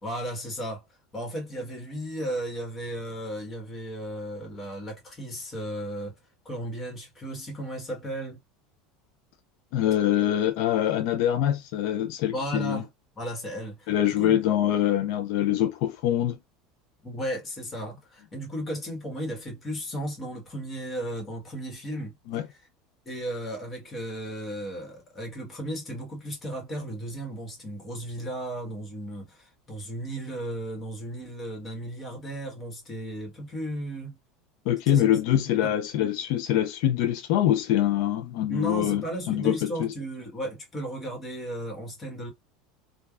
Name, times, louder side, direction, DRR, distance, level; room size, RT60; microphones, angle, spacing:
voice 1, 0.0-0.8 1.1-6.1 6.4-8.4 12.3-12.9 13.1-14.4 17.0-22.2 22.5-22.6 23.0-34.2 34.9-35.1 35.6-35.7 38.5-42.3, right 1 dB, 20° left, 1.3 m, -35 dB
voice 2, 9.7-12.8 13.9-16.4 22.3-22.4 34.7-39.9, left 11 dB, 65° left, 0.4 m, -24 dB
3.3 x 2.2 x 2.3 m
supercardioid pair, 135°, 0 cm